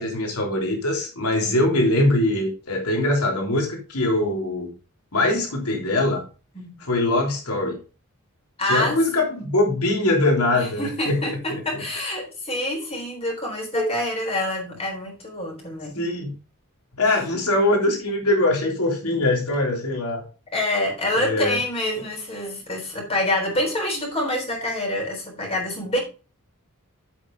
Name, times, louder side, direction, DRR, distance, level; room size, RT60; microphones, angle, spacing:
voice 1, 0.0-4.7 5.1-6.2 6.8-7.8 8.7-11.6 15.9-16.3 17.0-20.2 21.1-21.6, left 1 dB, 85° left, 1 dB, 3.2 m, -22 dB
voice 2, 8.6-9.4 10.5-16.0 20.5-26.0, left 1 dB, 30° left, 1 dB, 3.7 m, -26 dB
8.1 x 7.9 x 3.4 m, 0.34 s
head